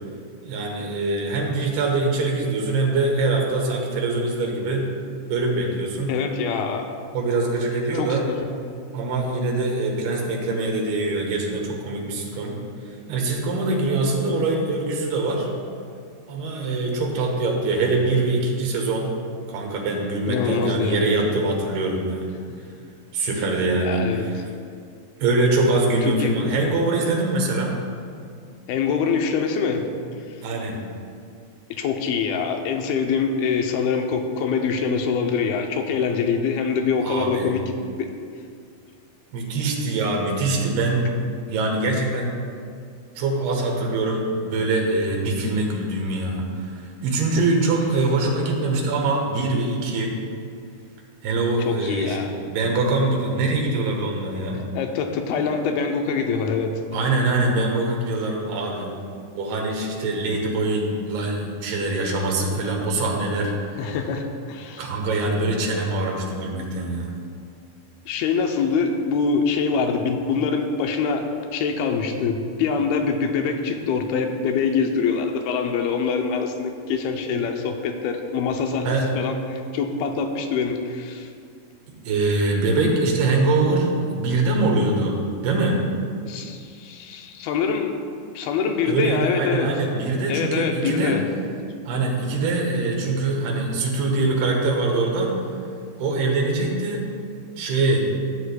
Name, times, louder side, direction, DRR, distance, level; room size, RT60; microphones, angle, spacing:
voice 1, 0.4-4.9 5.3-6.1 7.1-8.2 8.9-12.6 13.1-15.5 16.3-19.1 19.5-22.3 23.1-24.4 25.2-27.7 30.4-30.8 37.0-37.6 39.3-42.4 43.2-50.1 51.2-52.2 52.5-54.6 56.9-58.9 59.3-64.0 64.8-67.1 78.8-79.1 82.1-85.2 85.4-85.8 88.9-91.2 91.8-95.4 96.0-97.0 97.6-98.1, right 2 dB, 90° right, 0 dB, 3.2 m, -23 dB
voice 2, 6.1-6.9 8.0-8.5 20.3-21.0 23.8-24.3 26.2-26.3 28.7-29.9 31.7-37.6 38.0-38.1 51.7-52.3 54.8-56.8 63.8-64.9 68.1-71.3 71.5-81.3 86.3-88.0 88.4-89.7 90.3-91.2, left 5 dB, 85° left, 4 dB, 2.5 m, -24 dB
14.5 x 8.1 x 2.2 m, 2.3 s
omnidirectional pair, 4.4 m